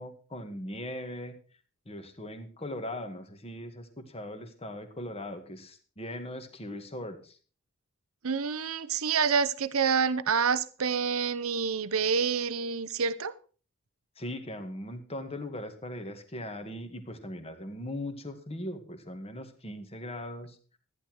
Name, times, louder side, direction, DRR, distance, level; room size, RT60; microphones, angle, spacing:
voice 1, 0.0-1.4 1.9-7.4 14.2-20.6, left 1 dB, 30° left, 2.1 m, -39 dB
voice 2, 8.2-13.3, right 6 dB, 75° right, 0.8 m, -27 dB
14.5 x 11.0 x 4.7 m
head